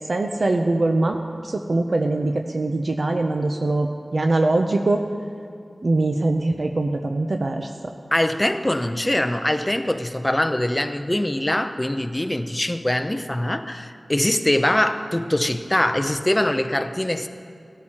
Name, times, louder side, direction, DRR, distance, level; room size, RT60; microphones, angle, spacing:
voice 1, 0.1-1.2 1.4-5.0 5.8-7.7, right 2 dB, 60° right, 4 dB, 0.5 m, -22 dB
voice 2, 8.1-17.3, left 1 dB, 15° left, 8 dB, 0.6 m, -23 dB
17.0 x 13.0 x 2.9 m, 2.4 s
wide cardioid pair, 85°, 0 cm